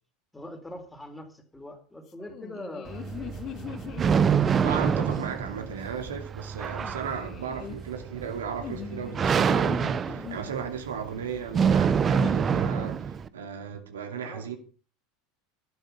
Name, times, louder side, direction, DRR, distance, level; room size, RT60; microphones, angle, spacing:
voice 1, 0.3-3.3 11.4-11.9 14.2-14.5, left 1 dB, 5° left, 3.7 m, -43 dB
sound 1, 2.2-5.2 6.7-7.8 8.6-10.7 12.1-12.3, left 10 dB, 40° left, 1.4 m, -41 dB
sound 2, 2.9-13.3, right 7 dB, 30° right, 1.0 m, -26 dB
voice 2, 4.6-14.6, right 7 dB, 75° right, 2.8 m, -35 dB
13.0 x 11.5 x 5.7 m
figure-of-eight pair, 80°, 0 cm